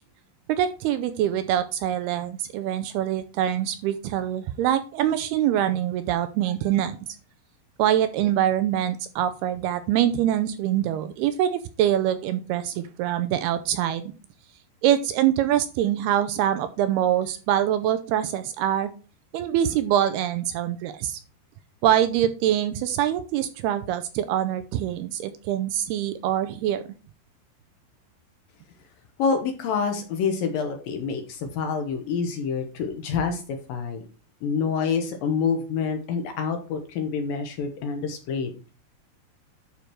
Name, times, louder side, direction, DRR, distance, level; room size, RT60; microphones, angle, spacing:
voice 1, 0.5-7.0 7.8-14.1 14.8-18.9 19.3-21.2 21.8-26.8, right 11 dB, 85° right, 11 dB, 2.4 m, -24 dB
voice 2, 29.2-33.4 33.7-34.1 34.4-38.7, left 5 dB, 70° left, 6 dB, 2.4 m, -27 dB
11.5 x 5.2 x 4.6 m, 0.36 s
omnidirectional pair, 5.0 m